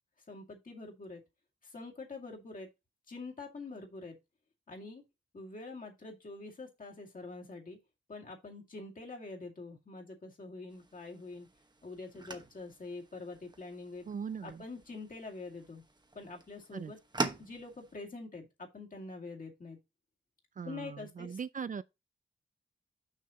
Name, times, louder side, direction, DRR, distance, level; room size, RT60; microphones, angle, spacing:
voice 1, 0.3-1.2 1.6-2.7 3.1-4.2 4.7-5.0 5.3-7.8 8.1-11.5 11.8-14.1 14.4-15.8 16.1-17.0 17.4-19.8 20.6-21.4, left 3 dB, 45° left, 2.2 m, -45 dB
sound 1, 10.7-17.9, right 2 dB, 20° right, 1.0 m, -43 dB
voice 2, 14.1-14.7 16.7-16.9 20.6-21.8, right 6 dB, 45° right, 0.4 m, -40 dB
6.5 x 5.7 x 4.0 m
wide cardioid pair, 110°, 19 cm